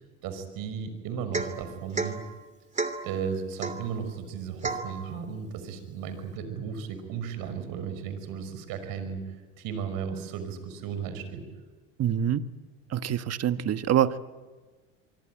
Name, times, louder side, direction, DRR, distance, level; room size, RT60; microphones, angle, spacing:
voice 1, 0.2-2.2 3.0-11.4, right 6 dB, 65° right, 10 dB, 5.7 m, -35 dB
Domestic sounds home sounds / Chink clink / Drip, 1.3-1.6 1.9-2.2 2.8-3.1 3.6-3.9 4.6-4.9, right 3 dB, 20° right, 2.9 m, -31 dB
voice 2, 12.0-12.4 12.9-14.2, right 10 dB, 40° right, 11 dB, 1.4 m, -25 dB
25.0 x 24.0 x 9.1 m, 1.3 s
supercardioid pair, 85°, 37 cm